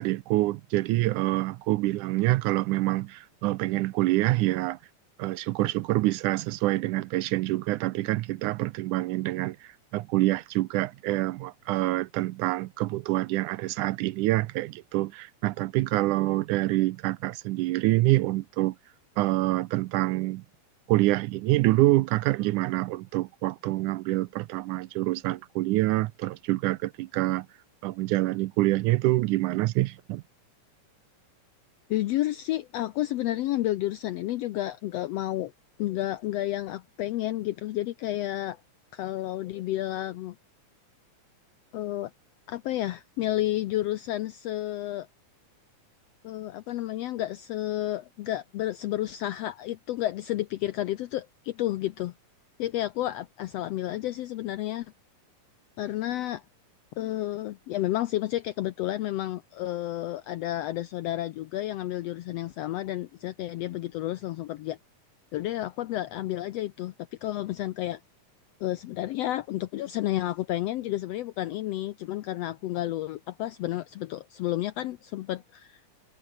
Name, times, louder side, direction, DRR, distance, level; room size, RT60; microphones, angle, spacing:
voice 1, 0.0-4.8 5.2-18.8 19.2-20.4 20.9-27.5 27.8-30.2, right 18 dB, 80° right, 2.0 m, -26 dB
voice 2, 31.9-35.5 35.8-38.6 38.9-40.4 41.7-42.1 42.5-45.1 46.2-52.1 52.6-54.9 55.8-56.4 57.0-64.8 65.3-66.9 67.2-68.0 68.6-75.8, left 14 dB, 90° left, 1.4 m, -31 dB
omnidirectional pair, 3.7 m